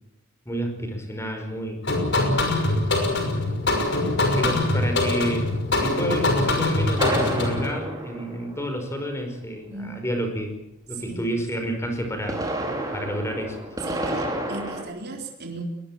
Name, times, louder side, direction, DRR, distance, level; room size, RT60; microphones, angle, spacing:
voice 1, 0.5-1.8 4.4-5.5 5.8-10.5 10.9-12.4 12.9-13.6, equal, 15° left, 5 dB, 5.3 m, -30 dB
sound 1, 1.8-7.7, left 2 dB, 55° left, 5.8 m, -23 dB
sound 2, 7.0-9.1 12.0-14.8, right 1 dB, 20° right, 4.8 m, -30 dB
voice 2, 10.9-11.3 13.9-15.6, right 3 dB, 50° right, 1 dB, 4.0 m, -36 dB
21.5 x 20.5 x 7.6 m, 0.80 s
head